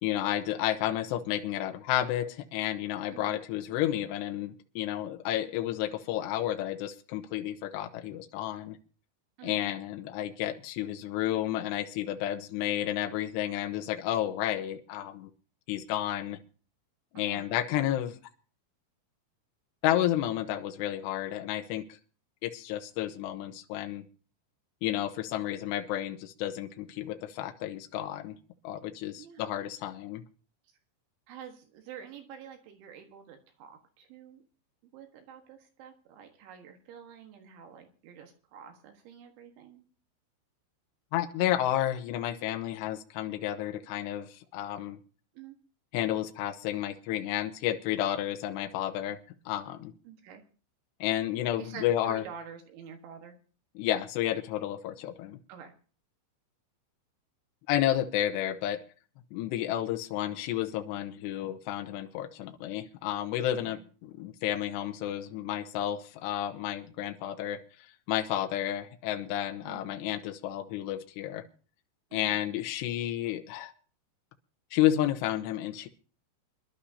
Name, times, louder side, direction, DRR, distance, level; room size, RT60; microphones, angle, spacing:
voice 1, 0.0-8.8 9.4-15.3 15.7-16.4 17.1-18.2 19.8-21.9 22.4-24.0 24.8-28.4 28.6-30.2 41.1-45.0 45.9-49.2 49.5-49.9 51.0-52.2 53.8-55.4 57.7-58.8 59.3-67.6 68.1-71.4 72.1-73.7 74.7-75.9, left 12 dB, 75° left, 5 dB, 2.8 m, -31 dB
voice 2, 3.1-3.4 9.4-9.7 17.2-17.5 29.2-29.5 31.3-34.4 34.9-39.8 45.3-45.6 50.1-50.4 51.6-53.4 55.5-55.7 63.5-63.8 69.6-69.9 72.1-72.4, right 7 dB, 75° right, 4 dB, 3.8 m, -48 dB
25.0 x 11.5 x 2.8 m, 0.39 s
omnidirectional pair, 5.7 m